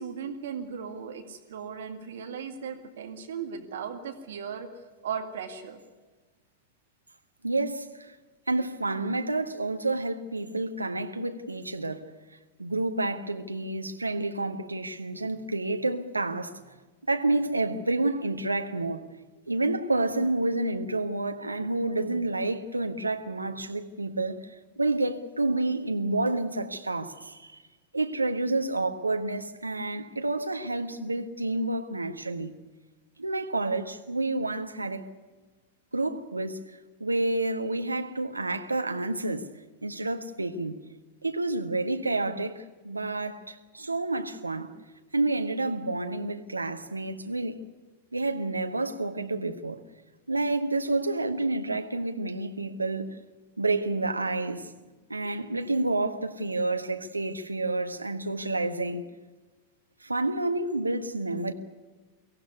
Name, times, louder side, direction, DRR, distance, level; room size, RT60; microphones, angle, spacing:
voice 1, 0.0-4.7 5.0-5.8, right 6 dB, 60° right, 2.1 m, -37 dB
voice 2, 7.4-8.1 8.5-12.1 12.6-16.6 17.1-19.1 19.5-27.6 27.9-32.5 33.2-35.1 35.9-36.6 37.0-39.5 39.8-40.8 41.2-44.7 45.1-47.6 48.1-49.8 50.3-53.2 53.6-54.7 55.1-59.0 60.0-61.5, right 2 dB, 80° right, 1.5 m, -29 dB
23.0 x 16.0 x 9.6 m
figure-of-eight pair, 90°, 0 cm